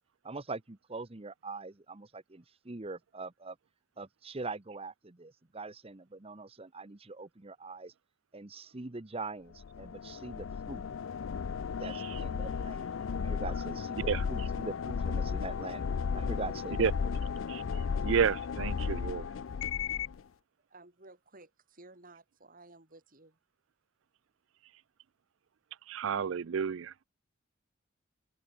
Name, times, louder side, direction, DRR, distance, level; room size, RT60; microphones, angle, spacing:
voice 1, 0.2-3.6 4.0-7.9 8.3-10.8 11.8-12.9 13.2-15.8 16.1-17.2, right 3 dB, 30° right, 1.0 m, -43 dB
sound 1, 9.6-20.2, left 6 dB, 85° left, 0.4 m, -34 dB
voice 2, 18.0-19.2 25.9-26.9, right 7 dB, 75° right, 0.4 m, -30 dB
voice 3, 20.7-23.4, right 2 dB, 45° right, 6.4 m, -55 dB
head